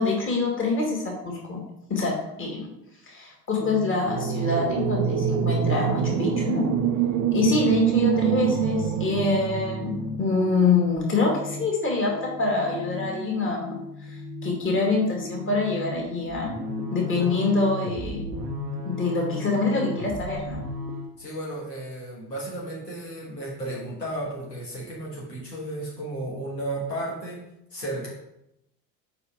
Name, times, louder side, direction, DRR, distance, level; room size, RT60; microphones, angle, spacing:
voice 1, 0.0-1.6 1.9-2.7 3.1-6.7 7.3-9.9 10.2-13.8 14.1-16.5 16.9-18.2 18.8-20.6, left 3 dB, 25° left, -2 dB, 2.3 m, -25 dB
sound 1, 3.6-20.9, left 2 dB, 5° right, 0.9 m, -37 dB
sound 2, 4.0-10.2, right 9 dB, 40° right, 0.6 m, -25 dB
sound 3, 16.3-21.2, left 2 dB, 75° right, 0.9 m, -35 dB
voice 2, 21.2-27.4 27.7-28.1, right 1 dB, 85° left, -5 dB, 1.6 m, -33 dB
5.3 x 4.9 x 5.1 m, 0.83 s
figure-of-eight pair, 60°, 48 cm